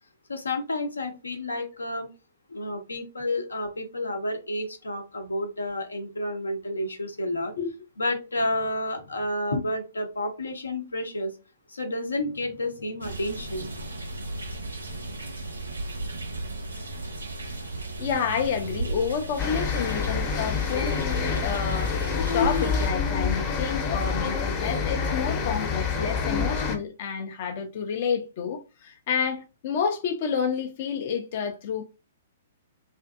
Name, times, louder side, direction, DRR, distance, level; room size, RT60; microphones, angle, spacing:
voice 1, 0.3-2.1 2.5-7.5 8.0-11.3 11.7-13.7, left 1 dB, 85° left, 0.7 m, -30 dB
sound 1, 13.0-22.9, right 2 dB, 85° right, 0.7 m, -35 dB
voice 2, 18.0-22.0 22.3-31.8, left 7 dB, 50° left, 0.4 m, -29 dB
sound 2, 19.4-26.8, left 5 dB, 35° left, 0.8 m, -27 dB
2.6 x 2.5 x 2.3 m
figure-of-eight pair, 120°, 0 cm